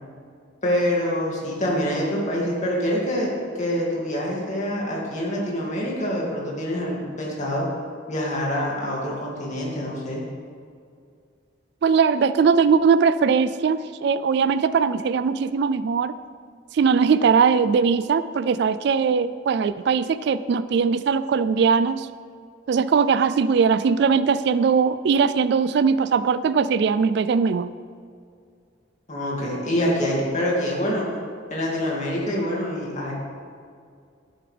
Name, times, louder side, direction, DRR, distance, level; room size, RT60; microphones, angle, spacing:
voice 1, 0.6-7.7 8.1-10.2 29.1-31.1 31.5-33.1, equal, 40° left, -3 dB, 2.4 m, -25 dB
voice 2, 11.8-16.1 16.7-22.1 22.7-27.7, right 6 dB, 60° right, 14 dB, 0.3 m, -20 dB
11.0 x 10.5 x 3.4 m, 2.3 s
head